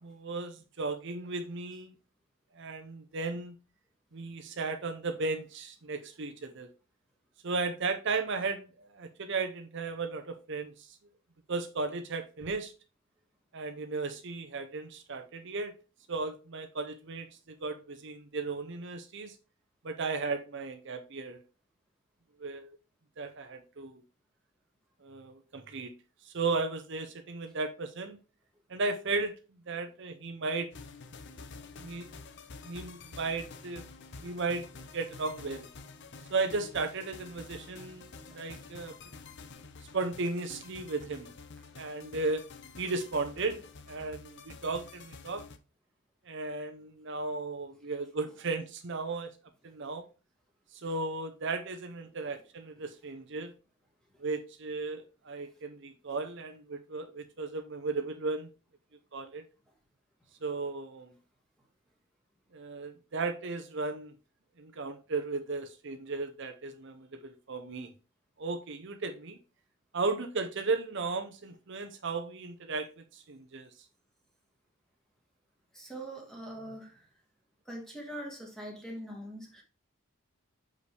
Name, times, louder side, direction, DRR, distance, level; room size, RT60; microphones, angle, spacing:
voice 1, 0.0-1.9 2.5-3.5 4.1-6.7 7.4-11.0 11.5-12.7 13.5-15.7 16.1-19.4 19.8-21.4 22.4-22.8 23.2-24.0 25.0-25.9 26.2-28.2 28.7-29.4 29.7-30.7 31.8-32.1 32.6-33.9 34.2-34.7 34.9-35.7 36.3-39.0 39.9-41.3 41.8-42.5 42.8-45.5 46.3-49.3 49.6-50.0 50.7-53.5 54.2-58.5 59.1-59.4 60.4-61.1 62.5-64.1 64.6-67.9 68.4-69.4 69.9-73.7, right 3 dB, 55° right, 0.7 m, -35 dB
sound 1, 30.7-45.6, left 4 dB, 50° left, 0.6 m, -49 dB
voice 2, 75.7-77.0 77.6-79.6, right 1 dB, ahead, 1.8 m, -42 dB
6.6 x 5.2 x 3.3 m
head